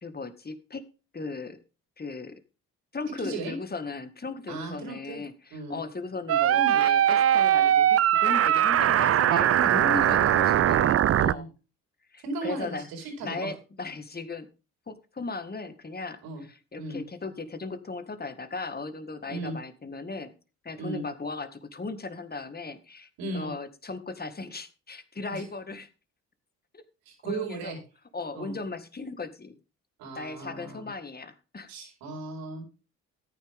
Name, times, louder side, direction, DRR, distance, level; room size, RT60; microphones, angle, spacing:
voice 1, 0.0-0.9 1.1-1.6 2.0-2.4 2.9-9.6 9.9-11.5 12.1-12.9 13.2-14.5 14.9-20.3 20.6-25.9 26.7-26.8 27.2-27.8 28.1-29.6 30.1-31.7, left 3 dB, 25° left, 9 dB, 1.9 m, -37 dB
voice 2, 3.2-3.6 4.5-5.2 5.5-5.8 6.5-6.8 9.5-10.3 10.6-10.8 11.2-11.5 12.2-13.5 16.2-16.4 16.7-17.0 19.2-19.6 20.8-21.0 23.2-23.5 25.3-25.4 27.0-27.8 28.3-28.6 30.0-30.9 31.7-32.7, right 2 dB, 80° right, 1 dB, 4.6 m, -36 dB
sound 1, 6.3-11.3, right 11 dB, 45° right, 0.5 m, -21 dB
13.5 x 9.4 x 3.6 m, 0.33 s
hypercardioid pair, 55°, 35 cm